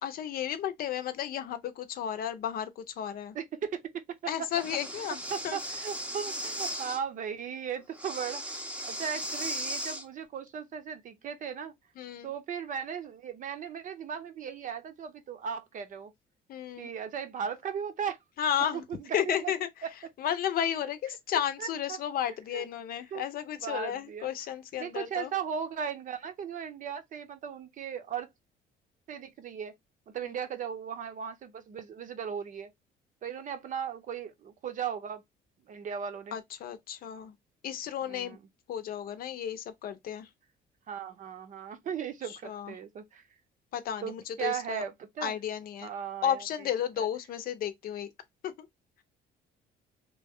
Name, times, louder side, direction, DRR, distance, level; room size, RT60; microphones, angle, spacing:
voice 1, 0.0-3.4 4.3-5.6 12.0-12.3 16.5-16.9 18.4-18.8 19.1-19.7 20.2-25.3 30.2-30.3 36.3-37.4 37.6-38.4 38.7-40.3 42.4-42.7 43.7-44.8 45.2-45.9 46.2-48.1 48.4-48.7, left 9 dB, 60° left, 0.7 m, -33 dB
voice 2, 3.3-4.5 5.3-8.4 8.8-11.7 12.2-16.1 16.8-18.2 18.7-19.5 21.6-22.0 22.5-22.6 23.1-23.2 23.6-24.3 24.8-28.3 29.1-29.7 30.1-32.7 33.2-35.2 35.7-36.4 38.1-38.4 40.9-43.2 44.0-45.3 45.8-46.4 47.0-47.1, right 7 dB, 50° right, 0.7 m, -37 dB
Breathing, 4.5-7.0 7.9-10.0, equal, 10° right, 0.7 m, -37 dB
3.0 x 2.1 x 3.5 m
cardioid pair, 110°, 17 cm